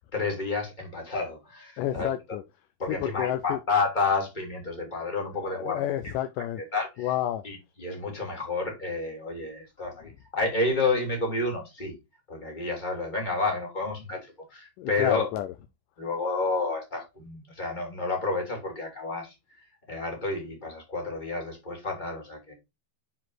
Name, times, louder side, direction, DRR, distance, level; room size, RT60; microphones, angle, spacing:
voice 1, 0.1-2.1 2.8-7.1 7.4-12.0 12.3-15.3 16.0-22.5, left 3 dB, 15° left, 2.6 m, -30 dB
voice 2, 1.8-2.4 2.9-3.6 5.4-6.6 7.0-7.5 14.8-15.5, left 12 dB, 85° left, 1.9 m, -30 dB
7.4 x 4.8 x 3.9 m
omnidirectional pair, 4.3 m